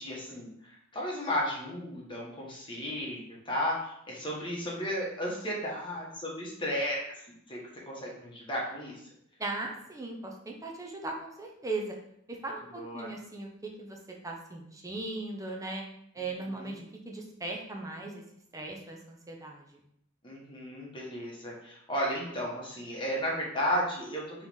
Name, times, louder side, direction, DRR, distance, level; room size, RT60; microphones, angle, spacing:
voice 1, 0.0-7.1 7.5-7.6 7.9-8.9 12.7-13.1 16.4-16.8 20.2-24.5, equal, 25° left, -4 dB, 1.2 m, -34 dB
voice 2, 9.4-12.0 12.3-14.0 14.2-15.8 16.1-18.2 18.5-19.8, right 2 dB, 15° right, 0 dB, 0.7 m, -38 dB
4.5 x 3.2 x 3.6 m, 0.73 s
head